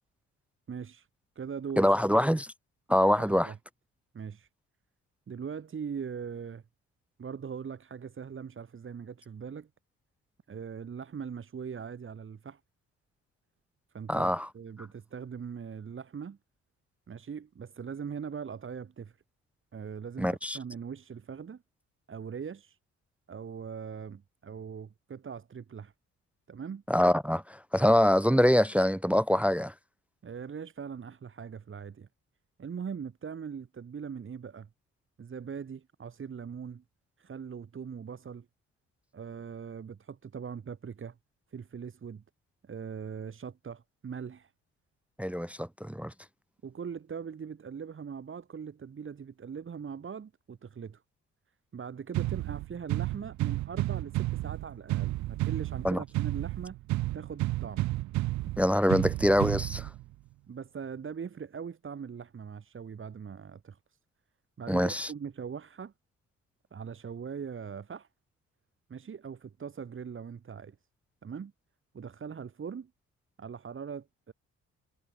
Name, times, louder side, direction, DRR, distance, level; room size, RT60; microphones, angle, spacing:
voice 1, 0.7-1.1 1.3-1.9 3.2-3.6 4.1-4.5 5.3-6.6 7.2-9.7 10.5-12.6 13.9-16.4 17.1-19.2 19.7-21.6 22.1-22.8 23.3-25.9 26.5-26.8 30.2-32.1 32.6-34.7 35.2-36.8 37.2-38.5 39.1-41.2 41.5-42.2 42.6-44.5 46.6-51.0 51.7-56.8 57.1-57.8 60.5-63.8 64.6-65.9 66.7-68.1 68.9-70.8 71.2-71.5 71.9-72.9 73.4-74.3, right 6 dB, 40° right, 3.0 m, -41 dB
voice 2, 1.8-2.5 2.9-3.5 14.1-14.5 20.2-20.6 26.9-29.7 45.2-46.1 55.8-56.0 58.6-59.9 64.7-65.1, equal, 5° right, 0.3 m, -25 dB
sound 1, 52.1-60.1, right 17 dB, 70° right, 0.5 m, -32 dB
cardioid pair, 90°, 30 cm